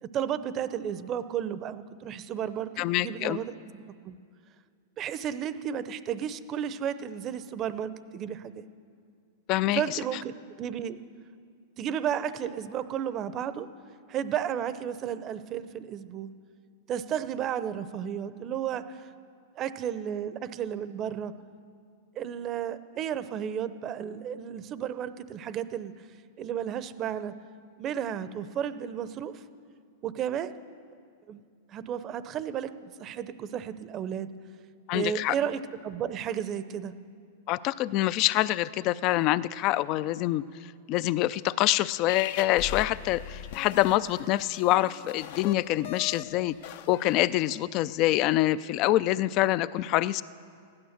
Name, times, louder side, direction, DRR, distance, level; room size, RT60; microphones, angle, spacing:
voice 1, 0.0-4.2 5.0-8.7 9.7-11.0 11.8-13.7 14.1-16.3 16.9-19.1 19.6-21.3 22.1-26.1 26.4-27.3 27.8-29.4 30.0-30.5 31.3-31.4 31.7-34.3 34.9-36.9, right 9 dB, 30° right, 13 dB, 0.7 m, -33 dB
voice 2, 2.8-3.4 9.5-9.8 34.9-35.3 37.5-40.4 40.9-46.5 46.9-50.2, left 15 dB, 45° left, 18 dB, 0.4 m, -25 dB
sound 1, 42.1-47.5, left 9 dB, 65° left, 0.7 m, -40 dB
15.5 x 12.0 x 6.6 m, 2.2 s
hypercardioid pair, 130°, 0 cm